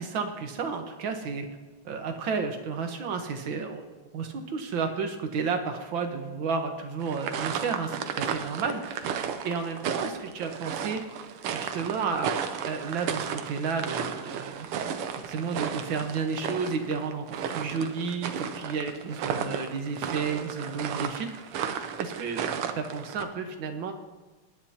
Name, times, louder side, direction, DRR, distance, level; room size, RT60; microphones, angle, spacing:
voice 1, 0.0-1.5 1.9-3.8 4.1-11.0 11.3-12.4 12.6-14.7 15.3-22.4 22.8-23.9, right 5 dB, 65° right, 5 dB, 1.9 m, -32 dB
sound 1, 7.0-23.2, right 7 dB, 90° right, 1.8 m, -34 dB
20.0 x 10.0 x 2.9 m, 1.2 s
omnidirectional pair, 2.4 m